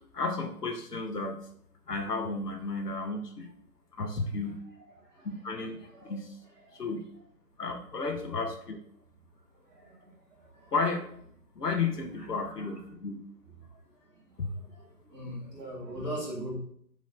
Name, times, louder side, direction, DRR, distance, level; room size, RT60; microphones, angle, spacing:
voice 1, 0.1-1.5 1.9-3.5 4.0-4.6 5.2-6.3 6.7-7.0 7.6-8.8 10.7-11.0 11.6-13.2 14.4-14.5, left 4 dB, 80° left, 4 dB, 0.9 m, -33 dB
voice 2, 15.1-16.6, equal, ahead, -18 dB, 1.8 m, -38 dB
4.3 x 3.1 x 3.7 m, 0.66 s
figure-of-eight pair, 150°, 48 cm